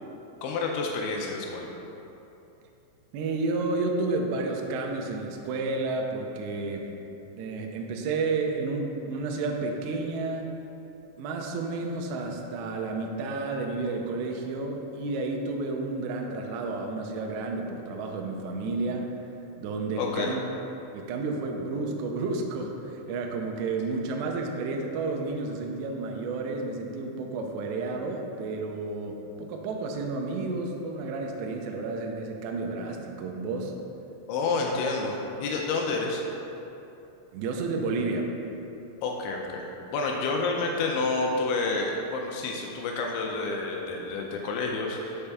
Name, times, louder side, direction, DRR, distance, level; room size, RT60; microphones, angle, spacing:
voice 1, 0.4-1.7 20.0-20.4 34.3-36.2 39.0-39.7 39.9-45.3, left 3 dB, 80° left, 0 dB, 2.8 m, -29 dB
voice 2, 3.1-6.9 7.4-10.5 11.2-19.1 19.6-20.4 20.9-33.7 37.3-38.3, right 3 dB, 85° right, 1 dB, 2.5 m, -31 dB
6.9 x 5.4 x 3.4 m, 2.9 s
omnidirectional pair, 5.5 m